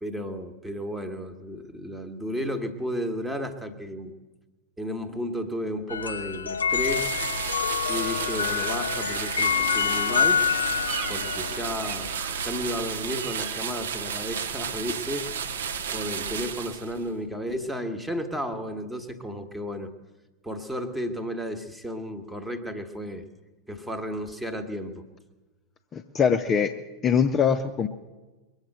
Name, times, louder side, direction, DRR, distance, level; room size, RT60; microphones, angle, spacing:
voice 1, 0.0-4.1 4.8-7.2 7.9-10.4 11.1-12.1 12.4-15.5 15.9-19.9 20.4-23.2 23.7-25.0, equal, 5° right, 7 dB, 1.3 m, -33 dB
sound 1, 5.9-13.1, left 7 dB, 75° left, 0.6 m, -28 dB
sound 2, 6.7-17.1, right 7 dB, 60° right, 0.8 m, -32 dB
sound 3, 8.2-13.6, right 5 dB, 45° right, 1.4 m, -41 dB
voice 2, 25.9-26.7 27.0-27.9, left 7 dB, 25° left, 5 dB, 0.7 m, -22 dB
22.0 x 8.0 x 7.6 m, 1.2 s
figure-of-eight pair, 90°, 0 cm